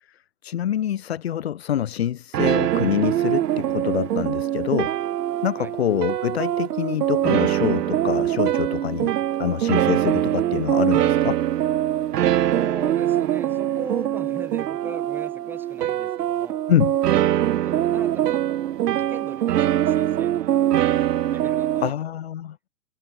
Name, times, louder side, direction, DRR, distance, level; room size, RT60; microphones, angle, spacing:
voice 1, 0.1-5.0 5.4-9.1 9.4-11.4 16.7-17.0 21.8-22.6, left 10 dB, 40° left, 1.3 m, -25 dB
sound 1, 2.3-21.9, right 12 dB, 85° right, 0.7 m, -23 dB
voice 2, 12.5-16.6 17.6-20.6 21.3-21.9, right 4 dB, 5° right, 3.0 m, -39 dB
hypercardioid pair, 170°, 46 cm